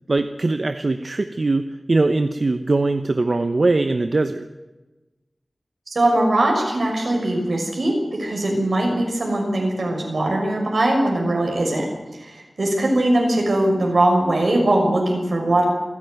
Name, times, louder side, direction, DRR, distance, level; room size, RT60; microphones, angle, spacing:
voice 1, 0.1-4.5, right 3 dB, 60° right, 8 dB, 0.9 m, -21 dB
voice 2, 5.9-7.9 8.2-11.8 12.1-15.6, right 1 dB, 80° right, 1 dB, 6.2 m, -20 dB
27.5 x 10.5 x 9.4 m, 1.1 s
wide cardioid pair, 65°, 0 cm